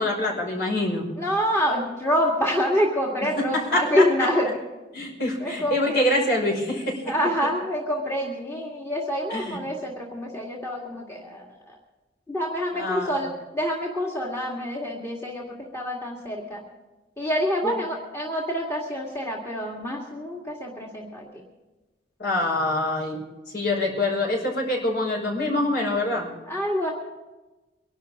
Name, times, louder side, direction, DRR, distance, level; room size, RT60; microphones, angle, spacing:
voice 1, 0.0-1.1 3.5-4.3 4.9-7.0 9.3-9.6 12.7-13.2 17.6-17.8 22.2-23.2 23.5-26.3, left 1 dB, 55° left, -1 dB, 5.7 m, -25 dB
voice 2, 1.2-4.5 5.4-6.2 7.1-11.5 12.3-16.6 17.2-21.4 26.5-26.9, equal, 15° left, -2 dB, 2.0 m, -26 dB
24.0 x 12.0 x 3.7 m, 1.1 s
head